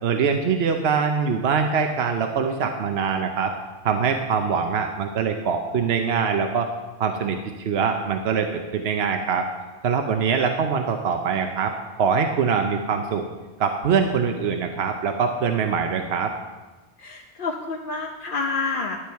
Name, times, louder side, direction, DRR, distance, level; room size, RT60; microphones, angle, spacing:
voice 1, 0.0-3.5 3.8-6.7 7.0-9.5 9.8-11.7 12.0-13.2 13.6-16.3, right 6 dB, 70° right, 5 dB, 1.0 m, -23 dB
voice 2, 17.0-19.0, left 4 dB, 55° left, 1 dB, 0.9 m, -28 dB
11.5 x 8.7 x 4.6 m, 1.2 s
omnidirectional pair, 1.1 m